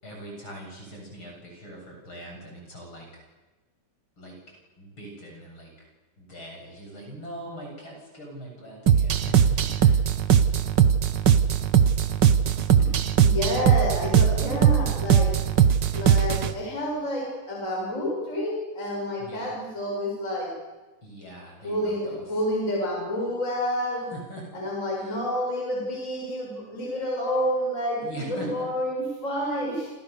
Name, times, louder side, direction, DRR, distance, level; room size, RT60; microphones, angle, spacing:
voice 1, 0.0-3.1 4.2-4.4 4.8-5.7 6.2-10.0 19.2-19.5 21.0-22.2 24.1-24.5 24.9-25.2 28.0-28.7, right 1 dB, 35° left, 0 dB, 8.4 m, -41 dB
sound 1, 8.9-16.5, right 9 dB, 80° right, 1.0 m, -20 dB
voice 2, 12.7-15.3 15.9-20.5 21.6-24.1 24.5-29.9, equal, 20° left, -2 dB, 7.0 m, -29 dB
29.0 x 27.5 x 6.9 m, 1.2 s
omnidirectional pair, 3.8 m